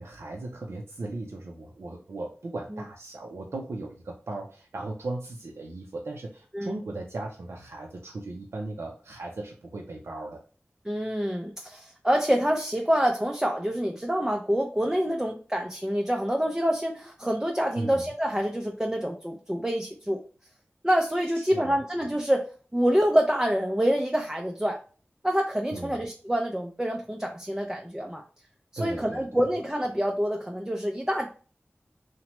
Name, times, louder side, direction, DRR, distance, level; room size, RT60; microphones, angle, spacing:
voice 1, 0.0-10.4 17.7-18.1 21.4-21.8 25.7-26.0 28.8-29.5, right 2 dB, 75° right, 0 dB, 0.4 m, -37 dB
voice 2, 10.9-20.2 20.8-24.8 25.2-28.2 28.8-31.3, equal, 15° right, 1 dB, 0.4 m, -26 dB
2.9 x 2.1 x 2.9 m, 0.38 s
cardioid pair, 40°, 4 cm